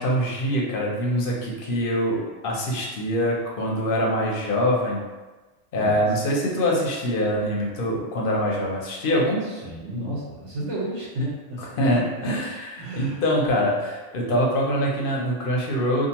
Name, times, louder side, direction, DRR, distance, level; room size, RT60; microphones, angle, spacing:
voice 1, 0.0-5.0 5.7-9.4 11.8-16.1, equal, 55° left, -2 dB, 0.7 m, -24 dB
voice 2, 9.4-11.6 11.9-12.4 12.8-13.2 13.5-13.8, right 1 dB, 65° right, -6 dB, 1.2 m, -32 dB
2.7 x 2.5 x 2.8 m, 1.2 s
omnidirectional pair, 1.3 m